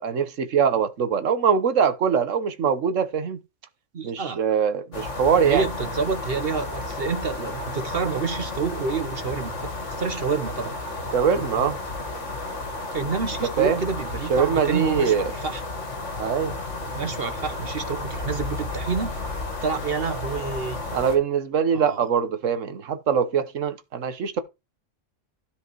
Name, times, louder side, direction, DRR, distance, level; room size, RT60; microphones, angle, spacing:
voice 1, 0.0-3.4 4.0-5.6 11.1-11.8 13.6-13.8 14.3-15.3 16.2-16.6 20.9-24.4, right 7 dB, 85° right, 1.4 m, -23 dB
voice 2, 3.9-4.4 5.4-10.8 12.9-15.6 17.0-19.1 19.6-20.8 21.7-22.0, right 5 dB, 50° right, 1.2 m, -28 dB
sound 1, 4.9-21.2, left 2 dB, 70° left, 2.5 m, -32 dB
13.0 x 5.3 x 4.6 m
omnidirectional pair, 1.3 m